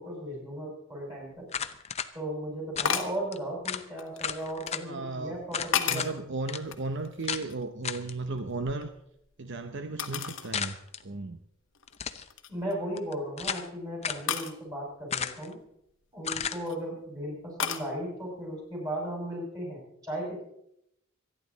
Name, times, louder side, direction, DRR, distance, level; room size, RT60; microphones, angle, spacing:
voice 1, 0.0-1.5 2.1-6.1 12.5-15.6 16.1-20.4, right 1 dB, 15° right, -2 dB, 6.3 m, -36 dB
sound 1, 1.4-1.5 2.8-3.2 4.0-4.8 5.4-6.2 6.7-7.7 8.1-9.3 10.0-10.5 11.0-11.1 11.7-12.0 12.3-12.7 14.3-14.6 16.3-16.8 17.6-17.9, left 7 dB, 65° left, 1.1 m, -33 dB
sound 2, 1.5-2.1 2.8-2.9 3.3-3.4 3.7-3.9 4.2-4.8 5.5-6.1 6.5-6.6 7.3-7.5 7.8-8.1 10.5-11.0 11.9-12.3 13.0-13.7 14.0-14.3 15.1-15.5 16.2-16.6, left 7 dB, 30° left, 0.7 m, -33 dB
voice 2, 4.8-5.4 5.9-8.9 9.4-10.8 11.0-11.4, right 3 dB, 60° right, 8 dB, 0.8 m, -35 dB
25.5 x 10.0 x 4.1 m, 0.77 s
head